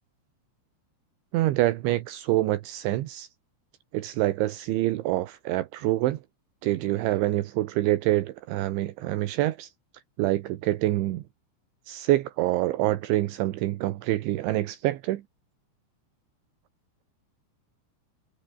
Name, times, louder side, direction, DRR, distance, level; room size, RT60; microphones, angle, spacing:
voice 1, 1.3-3.3 3.9-6.2 6.6-9.7 10.2-11.2 11.9-15.2, right 16 dB, 80° right, 3.5 m, -26 dB
omnidirectional pair, 5.6 m